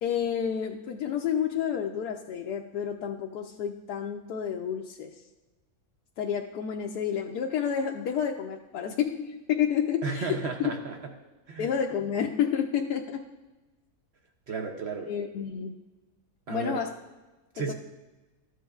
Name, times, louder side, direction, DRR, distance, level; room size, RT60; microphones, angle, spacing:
voice 1, 0.0-5.2 6.2-10.7 11.6-13.2 15.1-15.8 16.5-17.0 17.6-17.7, left 8 dB, 80° left, 1 dB, 1.1 m, -30 dB
voice 2, 10.0-11.0 11.5-11.7 14.5-15.1 16.5-16.8 17.5-17.7, right 4 dB, 60° right, 3 dB, 0.7 m, -33 dB
13.5 x 7.7 x 2.3 m, 1.1 s
omnidirectional pair, 1.7 m